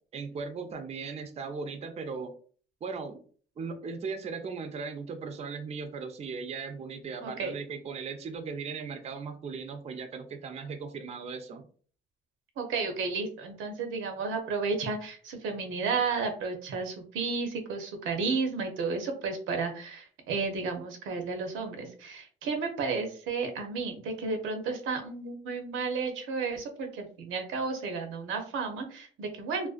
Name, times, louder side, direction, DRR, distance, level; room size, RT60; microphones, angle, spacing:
voice 1, 0.1-2.3 2.8-3.2 3.6-11.7, right 5 dB, 35° right, 7 dB, 0.4 m, -38 dB
voice 2, 7.2-7.5 12.6-29.7, right 4 dB, 85° right, 4 dB, 0.6 m, -32 dB
2.4 x 2.1 x 2.3 m, 0.43 s
cardioid pair, 90°, 20 cm